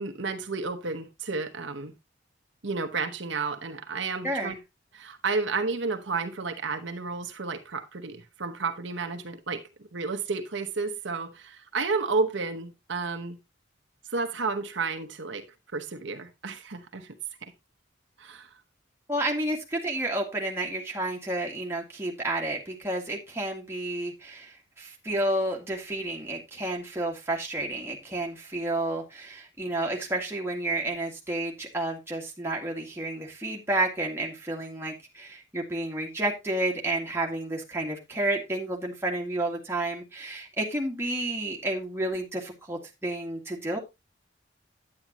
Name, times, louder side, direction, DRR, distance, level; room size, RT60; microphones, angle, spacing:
voice 1, 0.0-1.9 2.6-4.5 4.9-9.6 9.9-13.4 14.1-15.4 15.7-17.2 17.4-17.5 18.2-18.5, right 4 dB, 75° right, 1.0 m, -31 dB
voice 2, 4.2-4.6 19.1-43.8, right 1 dB, 15° right, 1.9 m, -31 dB
9.7 x 9.0 x 2.9 m
head